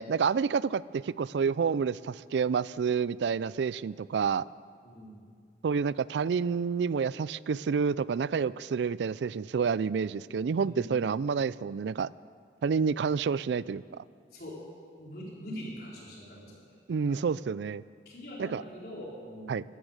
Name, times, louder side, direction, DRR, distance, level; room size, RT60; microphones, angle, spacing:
voice 1, 0.0-4.5 5.6-12.1 12.6-13.8 16.9-17.8 18.4-18.6 19.5-19.6, right 6 dB, 80° right, 20 dB, 0.4 m, -29 dB
voice 2, 4.8-5.2 10.2-11.1 14.3-14.6 15.0-16.6 16.9-17.2 18.1-19.6, equal, 55° left, -4 dB, 4.3 m, -43 dB
13.5 x 13.0 x 8.0 m, 2.1 s
head